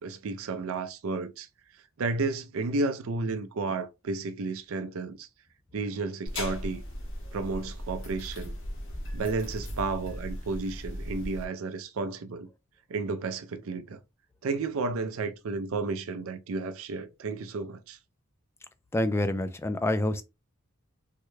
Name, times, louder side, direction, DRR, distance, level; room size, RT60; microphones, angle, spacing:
voice 1, 0.0-1.5 2.0-5.3 5.7-6.8 7.3-8.5 9.1-12.5 12.9-14.0 14.4-18.0, right 3 dB, 70° right, 0.4 m, -32 dB
sound 1, 6.3-11.5, left 1 dB, 60° left, 1.1 m, -37 dB
voice 2, 18.9-20.2, left 1 dB, 10° left, 0.3 m, -27 dB
3.6 x 2.2 x 3.1 m
head